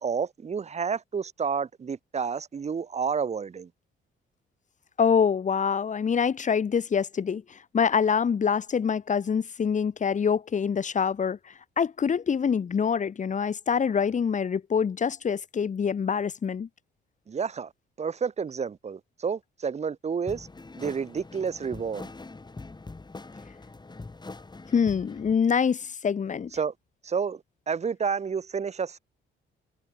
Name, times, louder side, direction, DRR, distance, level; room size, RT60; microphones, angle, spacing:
voice 1, 0.0-3.7 17.3-17.7 18.0-20.5 20.8-22.1 26.5-26.7 27.0-29.0, right 6 dB, 35° right, 0.9 m, -30 dB
voice 2, 5.0-11.4 11.8-16.7 24.7-26.5, left 6 dB, 40° left, 1.2 m, -25 dB
sound 1, 20.3-25.3, left 3 dB, 20° left, 6.2 m, -43 dB
cardioid pair, 90°, 20 cm